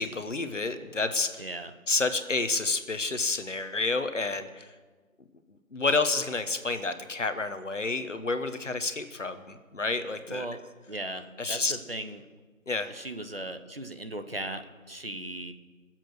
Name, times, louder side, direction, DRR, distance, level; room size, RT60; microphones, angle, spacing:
voice 1, 0.0-1.4 1.9-4.7 5.7-10.5 11.4-11.8 12.7-12.9, left 3 dB, 60° left, 9 dB, 1.2 m, -29 dB
voice 2, 1.4-1.7 10.3-12.2 12.9-15.5, right 1 dB, 45° right, 8 dB, 1.0 m, -38 dB
22.0 x 7.7 x 6.3 m, 1.3 s
figure-of-eight pair, 180°, 41 cm